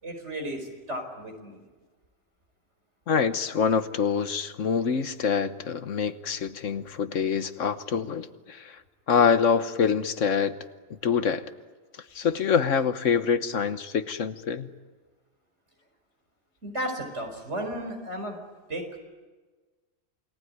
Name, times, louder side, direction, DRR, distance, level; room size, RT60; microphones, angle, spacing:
voice 1, 0.0-1.6 16.6-18.4 18.7-19.0, right 1 dB, 60° right, 4 dB, 5.0 m, -34 dB
voice 2, 3.1-8.8 9.1-10.6 11.0-11.5 12.1-14.7, left 6 dB, 75° left, 11 dB, 1.4 m, -25 dB
29.0 x 19.0 x 9.5 m, 1.3 s
omnidirectional pair, 1.3 m